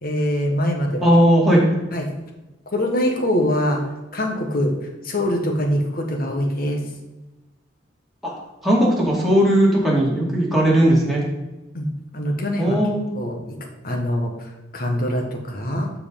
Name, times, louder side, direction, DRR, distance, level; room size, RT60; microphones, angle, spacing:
voice 1, 0.0-1.1 1.6-1.7 1.9-2.1 2.7-3.8 4.1-4.7 5.0-6.8 11.7-12.8 13.1-13.6 13.8-15.9, equal, 50° left, 2 dB, 1.5 m, -23 dB
voice 2, 1.0-1.6 8.2-8.3 8.6-11.2 12.6-13.0, equal, ahead, -5 dB, 2.3 m, -17 dB
12.0 x 4.8 x 3.9 m, 1.1 s
head